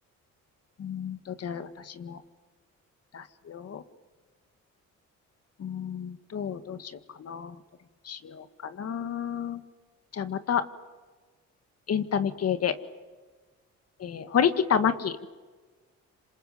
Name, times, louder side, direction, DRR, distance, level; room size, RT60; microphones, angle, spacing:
voice 1, 0.8-1.7 2.0-2.2 3.1-3.8 5.6-6.8 7.2-7.5 8.1-8.4 8.8-9.6 10.1-10.6 11.9-12.7 14.0-15.3, left 8 dB, 55° left, 10 dB, 1.9 m, -29 dB
27.5 x 26.5 x 7.9 m, 1.4 s
cardioid pair, 90°, 30 cm